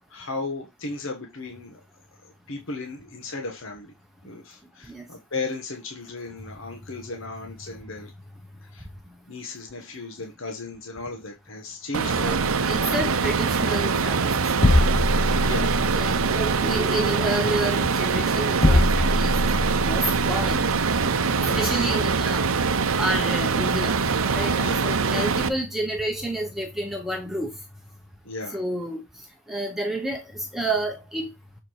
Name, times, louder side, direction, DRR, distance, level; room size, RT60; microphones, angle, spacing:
voice 1, 0.1-1.8 2.2-3.9 4.2-8.1 8.7-8.8 9.3-12.5 15.4-16.2 21.4-22.1 24.6-25.3 28.2-28.6, left 3 dB, 60° left, 1.4 m, -35 dB
sound 1, 11.9-25.5, right 5 dB, 70° right, 0.7 m, -23 dB
voice 2, 12.7-14.3 14.6-14.9 15.9-20.6 21.6-22.5 22.9-24.0 24.3-27.5 28.5-29.0 29.5-31.3, right 1 dB, ahead, 1.0 m, -30 dB
sound 2, 13.0-25.6, left 1 dB, 25° left, 0.6 m, -27 dB
6.8 x 4.7 x 4.7 m
head